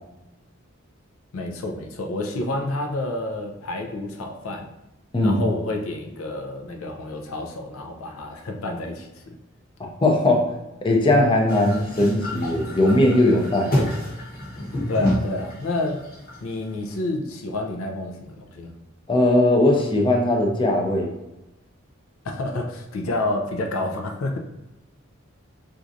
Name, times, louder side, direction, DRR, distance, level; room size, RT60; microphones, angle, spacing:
voice 1, 1.3-4.7 5.2-9.3 14.9-16.1 16.4-18.7 22.2-24.4, left 2 dB, 85° left, 3 dB, 0.5 m, -29 dB
voice 2, 10.0-10.5 10.8-13.7 19.1-21.1, left 1 dB, 25° left, 0 dB, 0.5 m, -19 dB
sound 1, 11.5-16.8, left 1 dB, 45° left, 1.0 m, -28 dB
4.4 x 2.5 x 2.6 m, 0.95 s
head